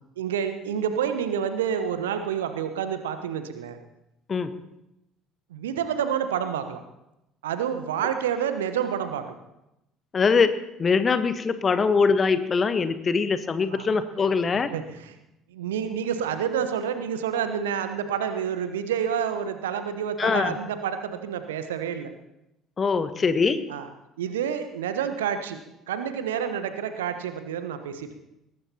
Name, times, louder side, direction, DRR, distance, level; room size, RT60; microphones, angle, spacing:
voice 1, 0.2-3.8 5.5-6.8 7.4-9.4 13.7-13.9 14.7-15.2 15.5-22.1 23.7-23.9 24.2-25.6 25.9-28.1, right 8 dB, 70° right, 9 dB, 1.1 m, -28 dB
voice 2, 10.1-14.7 20.2-20.6 22.8-23.7, left 5 dB, 30° left, 11 dB, 1.2 m, -23 dB
20.5 x 18.5 x 2.9 m, 0.88 s
figure-of-eight pair, 55°, 0 cm